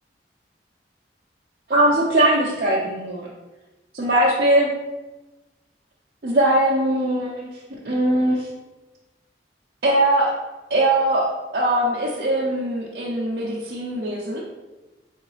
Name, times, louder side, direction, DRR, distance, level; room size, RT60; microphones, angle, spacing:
voice 1, 1.7-3.3 3.9-4.7 6.2-7.6 7.8-8.5 9.8-10.3 10.7-14.4, right 1 dB, 55° right, -5 dB, 0.5 m, -21 dB
3.8 x 3.2 x 3.1 m, 1.1 s
head